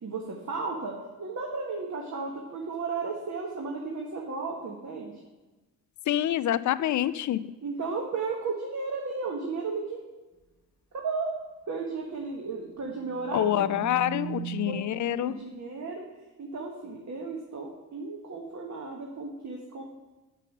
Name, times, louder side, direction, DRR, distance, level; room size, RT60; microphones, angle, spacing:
voice 1, 0.0-5.2 7.6-10.0 10.9-11.3 11.7-13.9 14.6-14.8 15.2-16.1 16.4-19.8, right 4 dB, 40° right, 0 dB, 1.3 m, -34 dB
voice 2, 6.1-7.4 13.3-15.3, left 12 dB, 45° left, 16 dB, 0.4 m, -26 dB
sound 1, 12.8-15.3, right 14 dB, 10° left, 1.6 m, -40 dB
6.4 x 5.3 x 5.4 m, 1.2 s
supercardioid pair, 50°, 42 cm